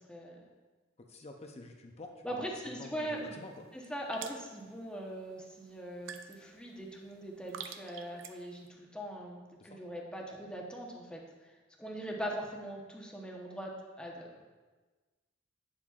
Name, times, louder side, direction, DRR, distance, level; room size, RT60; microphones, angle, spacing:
voice 1, 0.1-0.4 2.2-3.4 3.7-11.2 11.8-13.7 14.0-14.4, right 1 dB, 5° left, -1 dB, 0.9 m, -41 dB
voice 2, 1.0-3.5 9.6-9.8, left 2 dB, 35° left, 3 dB, 0.6 m, -48 dB
sound 1, 2.9-8.7, right 8 dB, 90° right, 0.5 m, -50 dB
8.5 x 7.3 x 2.4 m, 1.3 s
head